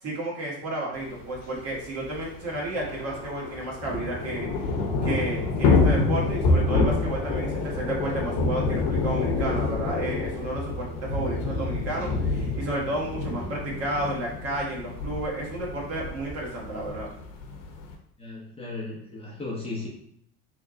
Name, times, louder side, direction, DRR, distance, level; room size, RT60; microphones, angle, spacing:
voice 1, 0.0-4.7 5.0-17.1, right 1 dB, 40° right, -4 dB, 1.4 m, -32 dB
Thunder / Rain, 1.3-1.4 1.7-1.8 2.1-17.9, left 3 dB, 70° left, 0.8 m, -27 dB
voice 2, 18.2-19.9, left 3 dB, 15° left, -5 dB, 0.8 m, -35 dB
3.3 x 2.2 x 3.8 m, 0.71 s
supercardioid pair, 125°, 36 cm